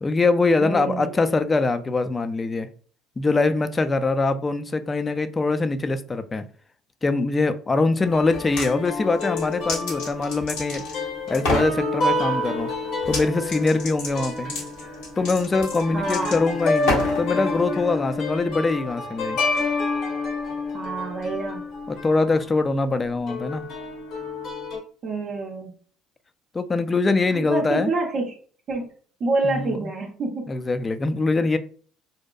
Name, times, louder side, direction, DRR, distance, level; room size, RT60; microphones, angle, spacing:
voice 1, 0.0-2.7 3.2-6.4 7.0-10.8 11.3-12.7 13.1-14.5 15.2-19.4 21.9-23.7 26.5-27.9 29.4-29.9 30.5-31.6, left 3 dB, 25° left, 10 dB, 0.3 m, -23 dB
voice 2, 0.6-1.2 15.9-16.3 20.7-21.6 25.0-25.7 27.3-28.3 28.7-28.8 29.2-30.5, right 3 dB, 55° right, -1 dB, 0.5 m, -27 dB
sound 1, 8.0-22.4 23.3-24.8, left 2 dB, 65° left, 0.9 m, -29 dB
sound 2, 8.3-8.7 9.1-11.0 11.3-11.7 13.0-13.2 13.5-17.2, left 2 dB, 85° left, 1.1 m, -28 dB
2.6 x 2.1 x 2.3 m, 0.43 s
supercardioid pair, 75°, 0 cm